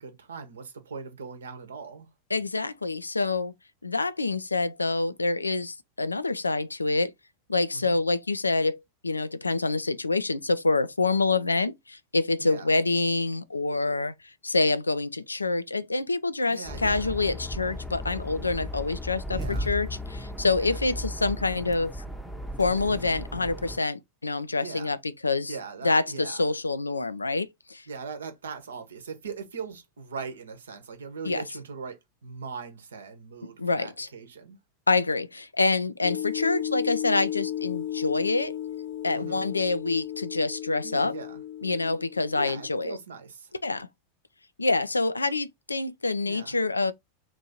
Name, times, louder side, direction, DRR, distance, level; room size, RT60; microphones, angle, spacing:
voice 1, 0.0-2.1 7.7-8.0 12.4-12.7 16.5-17.1 19.3-19.7 20.6-21.0 21.5-21.6 24.6-24.9 25.5-26.5 27.9-34.6 39.1-39.4 40.8-41.4 42.3-43.5 46.3-46.6, right 5 dB, 75° right, 0.9 m, -40 dB
voice 2, 2.3-3.5 3.8-7.1 7.5-14.1 14.4-21.9 22.6-25.6 25.8-27.9 31.2-31.4 33.6-34.1 34.9-38.5 39.0-41.1 41.6-43.0 43.6-43.9 44.6-46.9, left 3 dB, 90° left, 0.3 m, -26 dB
sound 1, 16.6-23.8, left 1 dB, ahead, 0.7 m, -36 dB
sound 2, 36.0-42.7, left 11 dB, 60° left, 0.9 m, -34 dB
2.9 x 2.6 x 4.1 m
figure-of-eight pair, 90°, 0 cm